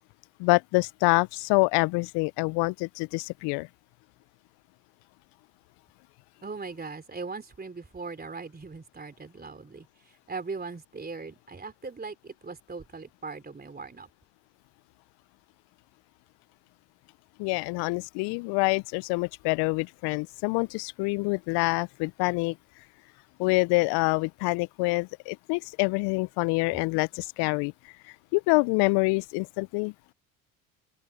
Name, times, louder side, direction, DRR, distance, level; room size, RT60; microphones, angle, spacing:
voice 1, 0.4-3.7 17.4-22.6 23.4-27.7 28.3-29.9, left 27 dB, 65° left, 0.5 m, -26 dB
voice 2, 6.4-14.1, right 4 dB, 20° right, 3.5 m, -39 dB
open air
hypercardioid pair, 65°, 44 cm